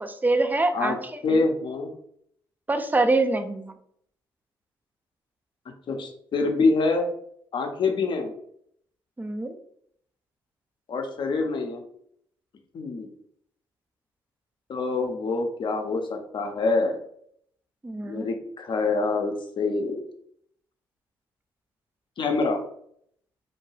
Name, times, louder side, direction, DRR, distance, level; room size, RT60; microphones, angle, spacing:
voice 1, 0.0-1.4 2.7-3.7 9.2-9.6 17.8-18.3, right 2 dB, 15° right, 8 dB, 0.4 m, -25 dB
voice 2, 1.2-1.9 5.9-7.1 7.5-8.3 10.9-11.8 12.7-13.1 14.7-17.0 18.0-20.0 22.2-22.6, left 3 dB, 50° left, 4 dB, 0.6 m, -25 dB
2.6 x 2.2 x 3.1 m, 0.68 s
hypercardioid pair, 45°, 10 cm